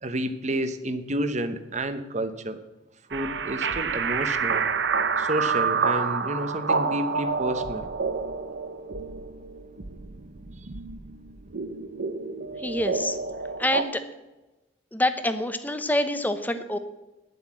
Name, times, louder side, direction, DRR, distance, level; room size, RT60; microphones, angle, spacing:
voice 1, 0.0-2.6 3.1-4.6 5.2-7.9, right 1 dB, 40° right, 10 dB, 1.0 m, -30 dB
sound 1, 3.1-13.8, right 5 dB, 65° right, 0.8 m, -28 dB
voice 2, 12.6-13.2 13.6-14.0 14.9-16.8, left 1 dB, 10° left, 9 dB, 0.9 m, -26 dB
10.5 x 7.9 x 7.5 m, 1.0 s
head